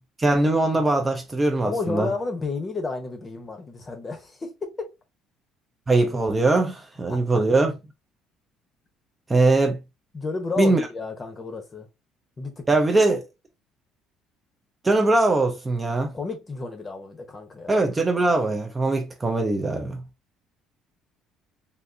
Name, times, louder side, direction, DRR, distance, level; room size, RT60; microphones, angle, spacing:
voice 1, 0.2-2.1 5.9-7.7 9.3-9.8 10.6-10.8 12.7-13.2 14.8-16.1 17.7-20.0, right 2 dB, 15° right, 0.5 m, -21 dB
voice 2, 1.6-4.9 7.1-7.4 10.1-11.9 12.4-12.7 16.1-17.7, left 3 dB, 20° left, 0.8 m, -31 dB
3.6 x 2.5 x 2.6 m
cardioid pair, 145°, 0 cm